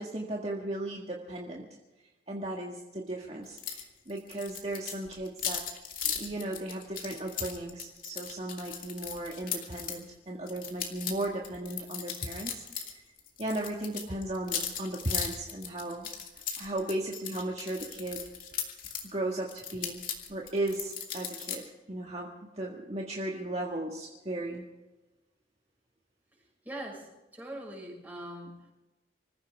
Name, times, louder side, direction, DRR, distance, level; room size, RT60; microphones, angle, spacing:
voice 1, 0.0-1.7 2.3-5.7 6.0-12.5 12.8-13.0 13.4-16.1 16.5-18.3 19.1-20.0 20.3-24.6, right 1 dB, 35° right, -2 dB, 1.8 m, -36 dB
sound 1, 3.6-10.0 10.5-12.9 13.2-19.1 19.5-21.6, left 8 dB, 50° left, 2.8 m, -37 dB
voice 2, 26.3-28.7, right 1 dB, 10° right, -1 dB, 6.0 m, -43 dB
25.5 x 15.5 x 3.6 m, 1.1 s
head